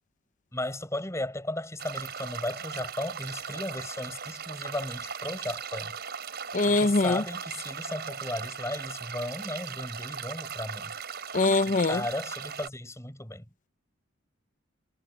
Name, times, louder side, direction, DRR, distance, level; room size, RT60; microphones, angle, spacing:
voice 1, 0.5-6.0 6.7-10.9 11.6-13.4, left 1 dB, 15° left, 6.1 m, -35 dB
sound 1, 1.8-12.7, right 6 dB, 50° right, 7.2 m, -38 dB
voice 2, 6.5-7.2 11.3-12.0, left 3 dB, 40° left, 0.6 m, -23 dB
head